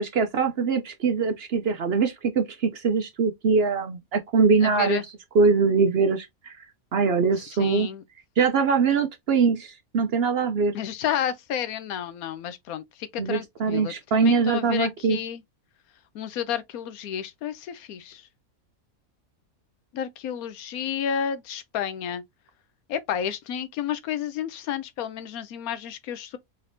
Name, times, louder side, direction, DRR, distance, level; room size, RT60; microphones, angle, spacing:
voice 1, 0.0-5.0 5.3-6.6 6.9-7.9 8.4-10.7 13.2-15.2, right 5 dB, 60° right, 0.7 m, -22 dB
voice 2, 4.6-5.0 7.6-8.0 10.7-15.4 16.1-18.2 19.9-22.2 22.9-26.4, left 9 dB, 90° left, 1.1 m, -31 dB
4.0 x 3.4 x 2.6 m
omnidirectional pair, 1.5 m